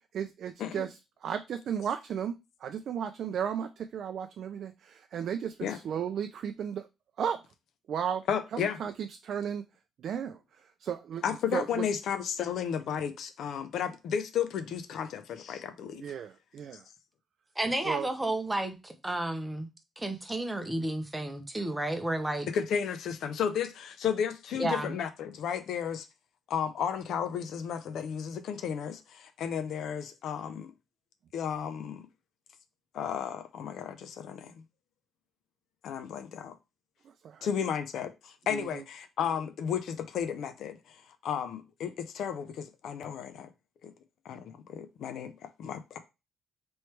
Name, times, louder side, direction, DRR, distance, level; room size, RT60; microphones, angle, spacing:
voice 1, 0.1-0.9 1.2-2.3 2.6-6.9 7.2-7.4 7.9-8.2 8.5-9.6 10.0-10.4 10.8-11.2 11.5-11.8 15.9-16.8 17.8-18.1 37.2-37.5 38.5-38.8, right 8 dB, 60° right, 0.3 m, -34 dB
voice 2, 8.3-8.8 11.2-16.0 22.5-26.1 26.5-30.7 31.3-32.1 32.9-34.5 35.8-36.5 37.4-43.5 43.8-43.9 44.2-46.0, left 8 dB, 70° left, 0.5 m, -33 dB
voice 3, 17.6-19.7 20.0-22.5 24.6-24.9, right 1 dB, 10° right, 0.7 m, -32 dB
3.2 x 3.1 x 4.3 m
cardioid pair, 125°, 0 cm